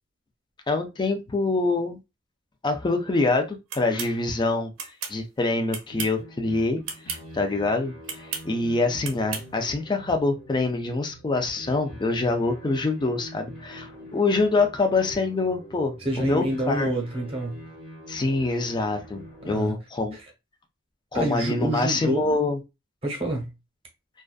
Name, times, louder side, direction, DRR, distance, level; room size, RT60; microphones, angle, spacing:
voice 1, 0.7-2.0 2.6-4.7 5.1-6.8 7.1-16.9 18.1-20.2 21.1-22.6, left 3 dB, 25° left, 0.4 m, -25 dB
sound 1, 3.7-4.1 4.8-5.2 5.7-6.2 6.8-7.2 8.0-8.5 9.0-9.5, right 6 dB, 70° right, 0.5 m, -33 dB
sound 2, 5.9-19.6, equal, 45° left, 1.4 m, -45 dB
voice 2, 16.0-17.6 19.4-19.7 20.1-20.2 21.1-22.3 23.0-23.5, right 1 dB, 30° right, 0.9 m, -27 dB
2.5 x 2.3 x 2.3 m
head